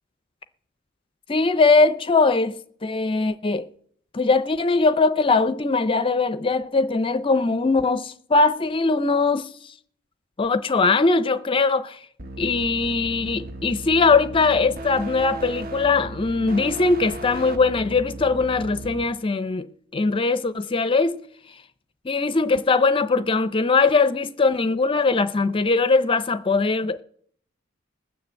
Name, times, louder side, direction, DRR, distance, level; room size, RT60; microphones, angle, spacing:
voice 1, 1.3-3.7 4.1-9.7 10.4-12.0 12.4-19.7 19.9-21.2 22.0-27.0, left 3 dB, 25° left, 0.5 m, -21 dB
sound 1, 12.2-19.1, right 1 dB, 50° right, 0.9 m, -36 dB
20.0 x 6.8 x 8.0 m
head